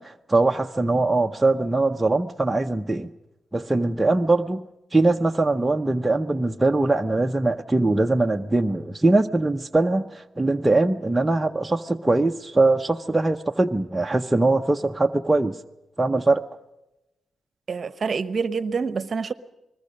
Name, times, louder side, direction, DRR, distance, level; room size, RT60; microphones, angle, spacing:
voice 1, 0.0-3.1 3.5-4.6 4.9-15.6 16.0-16.4, right 2 dB, 15° right, 0.7 m, -22 dB
voice 2, 17.7-19.3, right 5 dB, 45° right, 1.0 m, -27 dB
29.0 x 20.5 x 5.2 m
cardioid pair, 115°, 0 cm